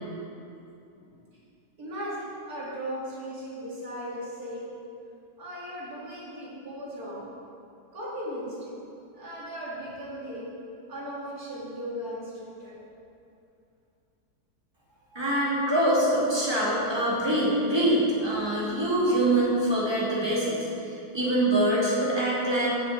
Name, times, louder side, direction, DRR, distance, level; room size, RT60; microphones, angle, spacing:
voice 1, 1.8-4.7 5.4-7.2 7.9-8.8 9.1-10.5 10.9-12.8, equal, 50° right, -7 dB, 2.9 m, -37 dB
voice 2, 15.1-22.7, right 1 dB, 15° right, -7 dB, 2.5 m, -24 dB
7.0 x 7.0 x 8.0 m, 2.6 s
omnidirectional pair, 2.1 m